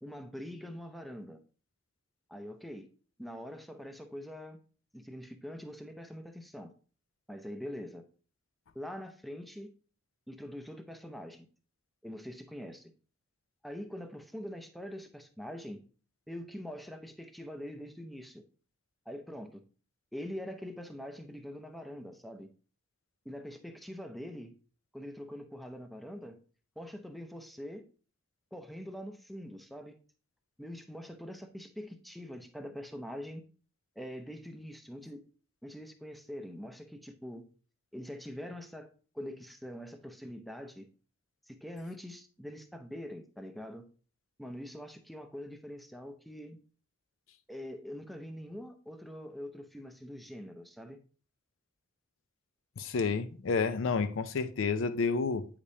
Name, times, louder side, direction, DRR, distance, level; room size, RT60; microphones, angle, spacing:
voice 1, 0.0-1.4 2.3-2.9 3.2-4.6 4.9-6.7 7.3-8.0 8.7-9.7 10.3-11.5 12.0-12.9 13.6-15.8 16.3-18.4 19.1-19.6 20.1-22.5 23.2-24.5 24.9-26.4 26.8-27.8 28.5-30.0 30.6-33.4 34.0-35.2 35.6-37.4 37.9-38.9 39.1-40.9 41.5-43.8 44.4-46.6 47.5-51.0, equal, ahead, 0.5 m, -44 dB
voice 2, 52.8-55.5, left 4 dB, 75° left, 0.5 m, -30 dB
8.4 x 5.1 x 2.7 m
head